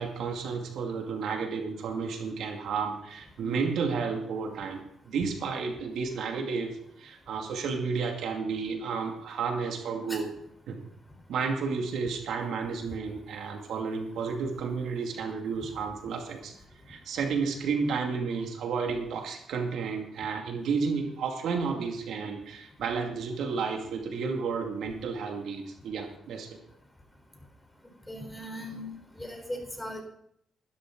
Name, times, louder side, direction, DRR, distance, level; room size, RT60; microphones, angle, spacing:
voice 1, 0.0-10.3 10.7-10.8 11.3-16.5 16.9-26.6, right 5 dB, 75° right, 3 dB, 2.4 m, -32 dB
voice 2, 28.1-28.9 29.1-30.0, equal, 10° left, 3 dB, 4.1 m, -38 dB
16.0 x 12.5 x 3.9 m, 0.71 s
cardioid pair, 90°, 0 cm